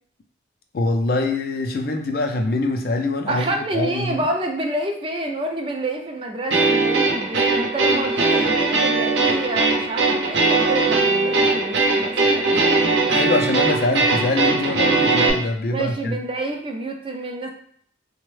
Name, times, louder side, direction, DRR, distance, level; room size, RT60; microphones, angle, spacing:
voice 1, 0.7-4.3 13.1-16.2, left 2 dB, 55° left, 4 dB, 0.4 m, -24 dB
voice 2, 3.3-12.8 15.7-17.5, right 2 dB, 30° right, 2 dB, 0.4 m, -28 dB
sound 1, 6.5-15.3, right 3 dB, 85° right, 0.7 m, -20 dB
3.4 x 2.1 x 3.2 m, 0.62 s
head